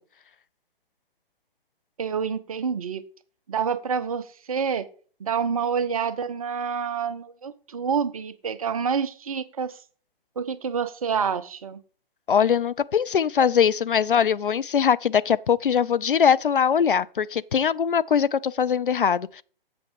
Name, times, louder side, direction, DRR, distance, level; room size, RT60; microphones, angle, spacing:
voice 1, 2.0-3.0 3.5-4.9 5.2-9.8 10.4-11.8, right 6 dB, 40° right, 0.6 m, -27 dB
voice 2, 12.3-19.4, left 7 dB, 65° left, 0.4 m, -21 dB
7.8 x 7.1 x 4.7 m
figure-of-eight pair, 135°, 29 cm